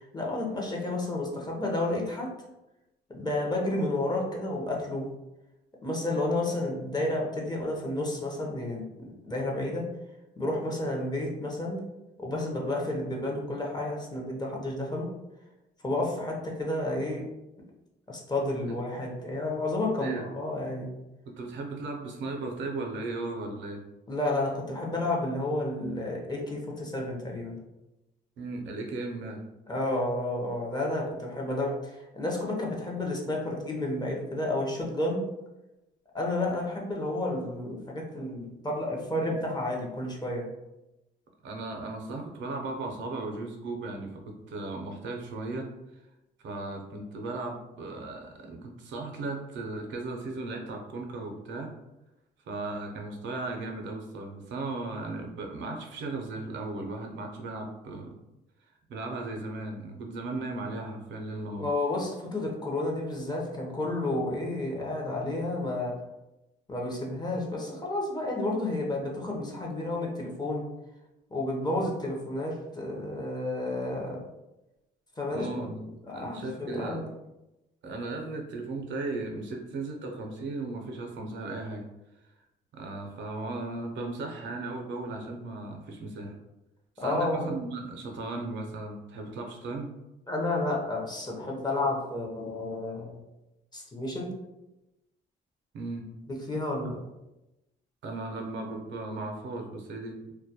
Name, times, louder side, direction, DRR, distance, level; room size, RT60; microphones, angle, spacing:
voice 1, 0.0-2.3 3.1-5.1 5.8-9.9 10.4-11.8 12.2-15.1 15.8-17.3 18.1-20.9 24.1-27.6 29.7-35.3 36.1-40.5 61.6-66.0 66.7-70.7 71.3-74.2 75.2-75.5 76.1-77.0 87.0-87.6 90.3-93.2 93.7-94.3 96.3-97.0, left 2 dB, 20° left, -1 dB, 0.6 m, -31 dB
voice 2, 21.3-23.8 28.4-29.4 41.4-45.7 46.4-51.7 52.5-58.1 58.9-61.7 75.3-75.8 76.1-77.1 77.8-81.8 82.7-86.4 87.0-89.9 95.7-96.1 96.8-96.9 98.0-100.3, right 2 dB, 65° right, 2 dB, 0.5 m, -36 dB
2.2 x 2.1 x 2.7 m, 0.97 s
cardioid pair, 90°, 20 cm